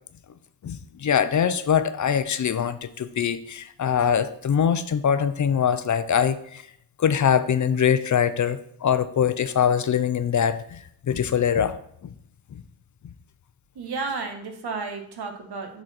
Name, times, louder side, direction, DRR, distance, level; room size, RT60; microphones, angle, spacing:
voice 1, 0.6-6.7 7.0-11.8, left 8 dB, 45° left, 12 dB, 0.5 m, -23 dB
voice 2, 13.7-15.8, right 4 dB, 70° right, 5 dB, 1.3 m, -32 dB
7.7 x 4.0 x 4.3 m, 0.70 s
wide cardioid pair, 105°, 40 cm